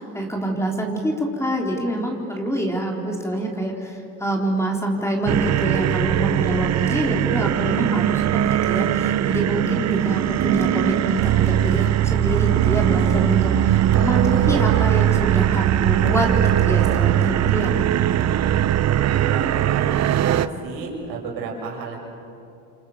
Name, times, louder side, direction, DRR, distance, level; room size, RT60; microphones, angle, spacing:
voice 1, 0.0-17.9, right 1 dB, 5° left, 0 dB, 4.0 m, -26 dB
sound 1, 5.3-20.5, right 11 dB, 40° right, 0.9 m, -20 dB
voice 2, 18.9-22.0, right 4 dB, 65° right, -1 dB, 7.2 m, -32 dB
29.0 x 26.0 x 7.4 m, 2.7 s
supercardioid pair, 90°, 39 cm